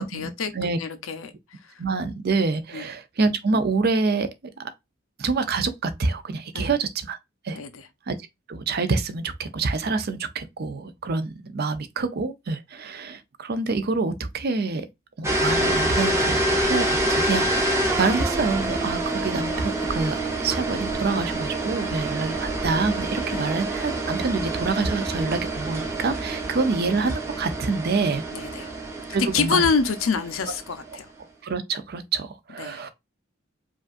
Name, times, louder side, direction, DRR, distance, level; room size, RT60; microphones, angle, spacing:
voice 1, 0.0-1.7 2.7-2.9 6.5-6.7 7.5-7.9 23.3-23.5 28.3-28.7 29.3-31.1 32.6-32.8, left 5 dB, 80° left, 0.7 m, -27 dB
voice 2, 1.8-4.3 5.2-7.2 7.4-7.6 8.1-8.2 8.5-14.9 15.2-28.2 29.1-29.6 31.4-32.9, right 4 dB, 50° right, 0.5 m, -26 dB
sound 1, 15.2-30.9, right 1 dB, 15° right, 0.8 m, -27 dB
4.9 x 2.5 x 2.4 m
head